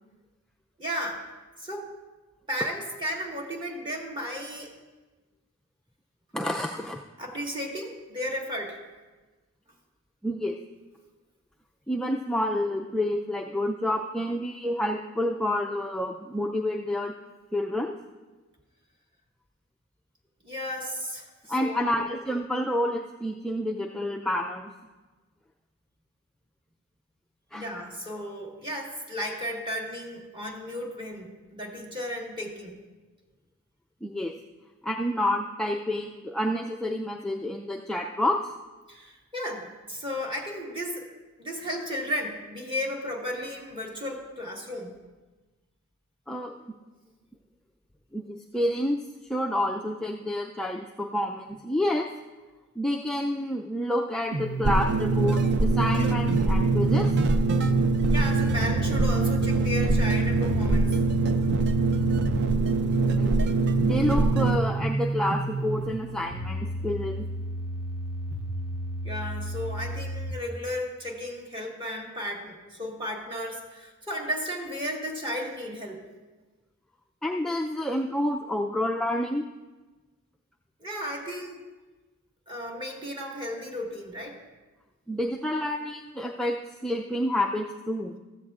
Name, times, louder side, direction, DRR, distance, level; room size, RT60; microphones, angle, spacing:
voice 1, 0.8-1.2 1.6-1.9 2.5-4.7 7.2-8.8 20.4-22.1 27.5-32.8 38.9-41.1 41.4-44.9 58.1-61.0 69.0-76.0 80.8-81.6 82.5-84.4, equal, 20° right, 0 dB, 1.6 m, -34 dB
voice 2, 6.3-7.0 10.2-10.6 11.9-17.1 17.5-17.9 21.5-24.7 27.5-27.6 34.0-34.3 34.8-38.5 46.3-46.5 48.1-49.0 49.3-52.1 52.8-57.1 63.1-63.4 63.8-67.3 77.2-79.4 85.1-88.2, left 1 dB, 5° left, 0 dB, 0.3 m, -29 dB
sound 1, 54.3-70.3, right 2 dB, 75° right, 0.9 m, -32 dB
sound 2, 54.6-64.6, right 3 dB, 50° right, 0.5 m, -23 dB
15.0 x 14.0 x 2.4 m, 1.2 s
head